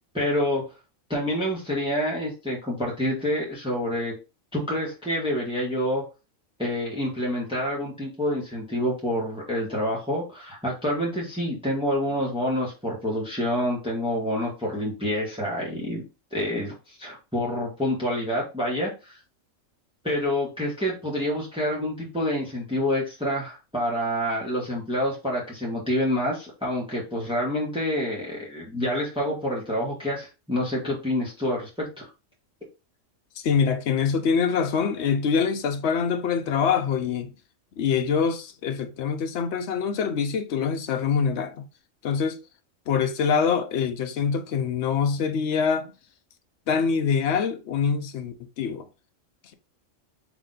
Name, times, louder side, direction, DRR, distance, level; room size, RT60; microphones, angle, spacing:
voice 1, 0.1-0.7 1.1-4.2 4.5-6.0 6.6-16.0 16.3-19.2 20.0-32.1, left 1 dB, 5° right, 1.4 m, -27 dB
voice 2, 33.4-37.3 37.8-41.7 42.0-42.4 42.9-45.9 46.7-48.9, left 6 dB, 65° left, 0.9 m, -24 dB
4.0 x 3.0 x 3.8 m
omnidirectional pair, 1.4 m